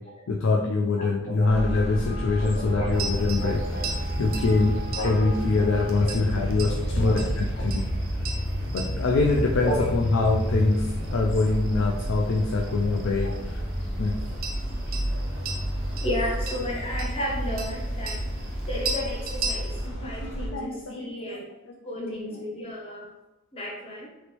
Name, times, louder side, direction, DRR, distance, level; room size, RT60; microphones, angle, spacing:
voice 1, 0.3-3.6 4.2-7.4 7.7-7.8 8.7-13.6 14.0-14.2 19.9-21.1 21.7-22.4, left 3 dB, 65° left, 0 dB, 0.4 m, -24 dB
voice 2, 1.0-1.7 2.4-3.9 4.9-5.3 5.7-6.1 6.7-7.2 7.6-7.7 9.6-9.9 11.1-11.2 12.8-12.9 13.2-13.4 16.0-18.2 18.7-21.5 21.8-23.1 23.5-24.1, equal, 30° left, -2 dB, 0.7 m, -34 dB
Traffic noise roadway noise, 1.5-20.5, equal, 85° left, 1.4 m, -30 dB
sound 1, 2.9-19.9, right 2 dB, 45° right, 0.5 m, -38 dB
3.1 x 3.0 x 3.0 m, 0.97 s
head